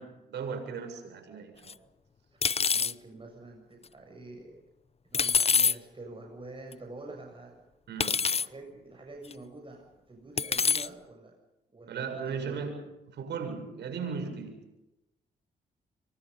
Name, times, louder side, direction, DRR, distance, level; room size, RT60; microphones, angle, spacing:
voice 1, 0.0-1.8 7.9-8.2 11.9-12.8 13.1-14.6, right 5 dB, 80° right, 6 dB, 7.4 m, -37 dB
sound 1, 1.7-1.8 2.4-2.9 5.1-5.8 6.7-6.8 8.0-8.5 9.3-9.4 10.4-10.9, left 6 dB, 35° left, 0.7 m, -25 dB
voice 2, 2.7-4.6 5.1-7.5 8.3-11.4 11.7-12.7, right 2 dB, 30° right, 1 dB, 7.7 m, -46 dB
27.5 x 24.0 x 5.5 m, 0.95 s
cardioid pair, 65°, 18 cm